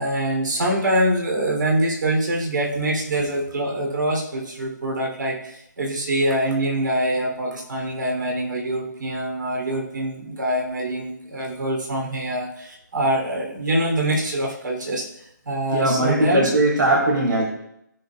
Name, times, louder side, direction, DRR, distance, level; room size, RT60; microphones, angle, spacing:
voice 1, 0.0-15.0 15.4-16.5, right 1 dB, 70° right, 0 dB, 3.0 m, -24 dB
voice 2, 15.7-17.4, right 2 dB, 85° right, -1 dB, 2.6 m, -20 dB
16.5 x 5.5 x 2.3 m, 0.77 s
hypercardioid pair, 160°, 11 cm